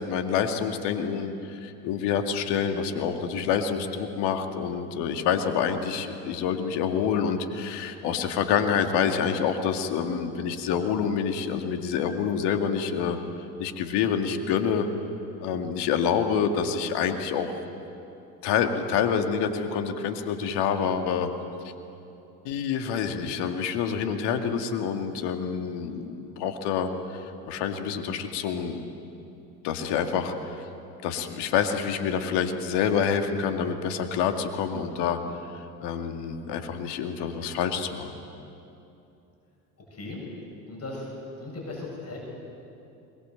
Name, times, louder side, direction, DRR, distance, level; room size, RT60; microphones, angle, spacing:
voice 1, 0.0-13.2 13.6-14.9 15.4-17.5 18.4-21.3 22.4-28.8 29.6-30.6 31.0-38.1, left 7 dB, 55° left, 6 dB, 2.4 m, -27 dB
voice 2, 39.9-40.2 40.7-41.1 41.4-42.2, left 2 dB, 30° left, -2 dB, 8.0 m, -37 dB
23.5 x 21.0 x 7.8 m, 2.8 s
hypercardioid pair, 75°, 49 cm